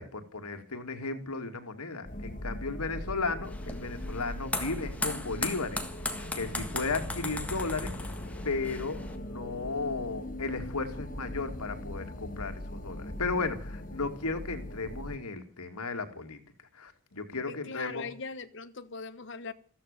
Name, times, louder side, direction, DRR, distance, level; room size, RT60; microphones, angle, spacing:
voice 1, 0.0-5.8 6.3-7.9 8.4-16.4 16.7-18.1, left 3 dB, 90° left, 2.5 m, -35 dB
sound 1, 2.1-15.2, left 1 dB, 35° left, 1.8 m, -40 dB
sound 2, 3.4-9.2, left 2 dB, 5° left, 1.7 m, -37 dB
voice 2, 17.5-19.5, left 4 dB, 55° left, 1.3 m, -40 dB
14.5 x 13.0 x 6.8 m
head